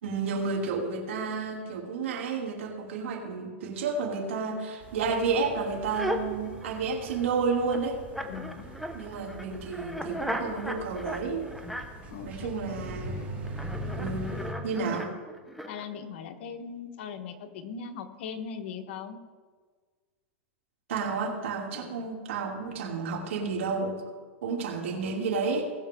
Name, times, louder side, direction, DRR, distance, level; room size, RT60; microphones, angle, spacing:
voice 1, 0.0-8.0 8.9-11.5 12.2-13.2 14.0-14.4 14.6-15.1 20.9-24.0 24.4-25.6, right 4 dB, 90° right, 0 dB, 2.9 m, -31 dB
sound 1, 4.8-14.5, right 1 dB, 25° right, 2.8 m, -41 dB
sound 2, 5.9-7.3 7.6-12.1 13.4-15.8, equal, ahead, 0.9 m, -37 dB
voice 2, 8.3-8.6 12.1-12.5 13.1-13.4 15.7-19.2 21.7-22.0 24.9-25.3, left 6 dB, 65° left, 6 dB, 1.3 m, -40 dB
19.5 x 7.0 x 3.7 m, 1.5 s
supercardioid pair, 150°, 7 cm